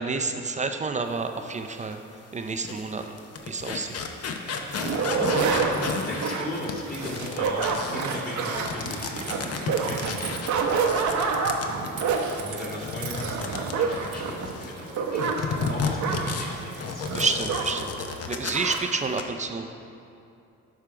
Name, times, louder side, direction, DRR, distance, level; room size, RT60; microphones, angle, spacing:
voice 1, 0.0-2.0 2.3-3.2 3.5-4.0 9.2-9.3 17.1-17.9 18.2-19.8, right 4 dB, 25° right, 7 dB, 0.4 m, -29 dB
sound 1, 1.8-1.9 2.5-14.7 15.2-18.7 19.0-19.2, left 5 dB, 55° left, 0.8 m, -33 dB
sound 2, 4.7-17.9 18.2-18.3 18.5-18.8, right 5 dB, 70° right, 0.8 m, -28 dB
voice 2, 5.1-5.7 6.1-10.3 11.5-11.7 12.3-17.1, left 1 dB, 30° left, -5 dB, 1.8 m, -37 dB
9.9 x 3.6 x 5.8 m, 2.6 s
cardioid pair, 90°, 30 cm